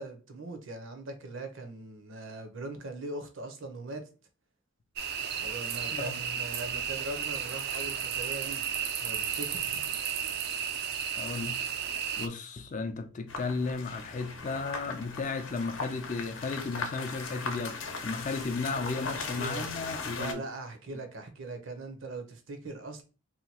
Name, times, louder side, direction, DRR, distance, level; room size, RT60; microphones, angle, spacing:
voice 1, 0.0-4.0 5.4-8.6 9.0-9.8 19.0-19.6 20.1-23.0, right 2 dB, 70° right, 0.8 m, -40 dB
sound 1, 5.0-12.3, right 8 dB, 50° right, 0.4 m, -33 dB
voice 2, 11.2-11.6 12.2-20.4, left 4 dB, 40° left, 0.4 m, -34 dB
sound 2, 13.3-20.3, left 4 dB, 75° left, 0.7 m, -38 dB
2.8 x 2.3 x 4.1 m
head